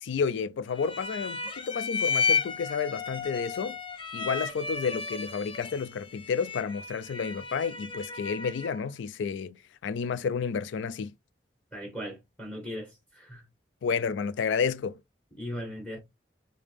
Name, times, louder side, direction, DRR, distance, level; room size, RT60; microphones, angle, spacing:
voice 1, 0.0-3.8 4.1-9.6 9.8-11.1 13.8-15.0, left 6 dB, 80° left, 0.3 m, -31 dB
sound 1, 0.7-8.9, left 5 dB, 30° left, 0.5 m, -33 dB
voice 2, 11.7-13.4 15.4-16.0, equal, 5° left, 1.3 m, -38 dB
3.4 x 2.9 x 3.4 m
head